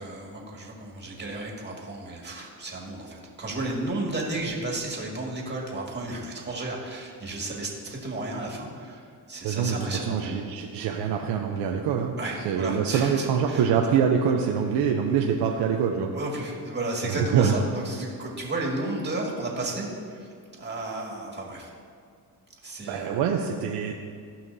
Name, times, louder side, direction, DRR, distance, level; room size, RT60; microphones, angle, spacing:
voice 1, 0.0-10.2 12.2-13.7 16.1-20.3 20.6-21.7 22.6-23.2, right 2 dB, 25° right, -2 dB, 2.1 m, -33 dB
voice 2, 9.4-12.2 12.4-16.1 17.1-17.5 22.8-23.9, right 7 dB, 80° right, 2 dB, 0.7 m, -25 dB
15.5 x 5.7 x 2.7 m, 2.2 s
cardioid pair, 90°, 41 cm